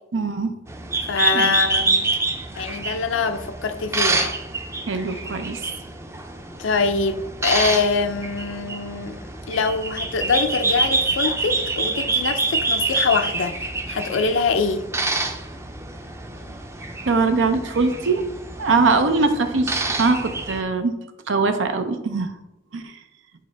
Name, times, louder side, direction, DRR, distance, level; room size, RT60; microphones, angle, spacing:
voice 1, 0.1-0.6 1.3-1.6 4.9-5.6 17.1-18.2 18.6-21.0 21.3-22.3 22.7-22.9, right 3 dB, 85° right, 0.6 m, -22 dB
sound 1, 0.7-20.6, right 3 dB, 15° right, 0.4 m, -27 dB
voice 2, 1.0-2.0 2.6-4.3 6.6-9.2 9.5-13.6 13.9-14.8, left 4 dB, 85° left, 0.5 m, -24 dB
8.5 x 3.9 x 3.4 m
head